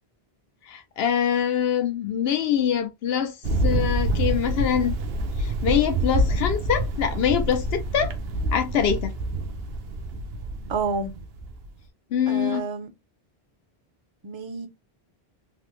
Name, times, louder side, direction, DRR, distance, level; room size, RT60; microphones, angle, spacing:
voice 1, 0.7-3.3 3.6-5.0 5.4-8.1 8.5-9.1 12.1-12.6, left 9 dB, 75° left, 0.8 m, -24 dB
Thunder, 3.4-11.7, right 1 dB, 75° right, 0.8 m, -27 dB
voice 2, 10.7-11.1 12.3-12.9 14.2-14.7, right 4 dB, 35° right, 0.5 m, -29 dB
3.3 x 2.0 x 2.9 m
omnidirectional pair, 1.1 m